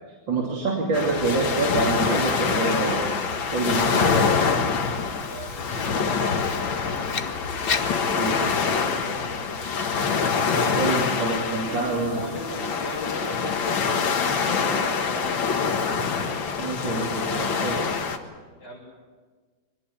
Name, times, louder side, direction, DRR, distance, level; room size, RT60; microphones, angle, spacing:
voice 1, 0.3-3.2 3.5-4.4 8.2-8.4 10.7-12.2 16.6-17.8, right 3 dB, 70° right, -2 dB, 3.5 m, -26 dB
sound 1, 0.9-18.2, left 5 dB, 75° left, 2.3 m, -25 dB
Writing, 4.1-9.1, left 5 dB, 45° left, 0.8 m, -36 dB
voice 2, 5.2-7.3 7.7-9.6 11.5-16.2 18.6-18.8, left 1 dB, 60° left, -8 dB, 6.4 m, -38 dB
24.0 x 20.0 x 8.5 m, 1.4 s
omnidirectional pair, 2.1 m